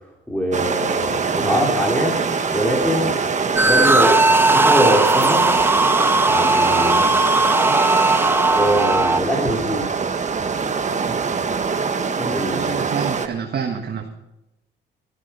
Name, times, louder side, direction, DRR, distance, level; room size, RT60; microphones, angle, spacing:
voice 1, 0.3-2.3 2.5-3.2 3.6-4.2 4.5-5.5 6.3-7.0 8.5-9.9 12.2-12.7, equal, 5° left, -1 dB, 3.1 m, -22 dB
sound 1, 0.5-13.3, right 5 dB, 35° right, 1.4 m, -23 dB
sound 2, 3.6-9.2, right 2 dB, 10° right, 0.4 m, -17 dB
voice 2, 12.5-14.1, right 6 dB, 55° right, 3 dB, 1.6 m, -27 dB
15.0 x 12.0 x 5.5 m, 0.91 s
cardioid pair, 90°, 20 cm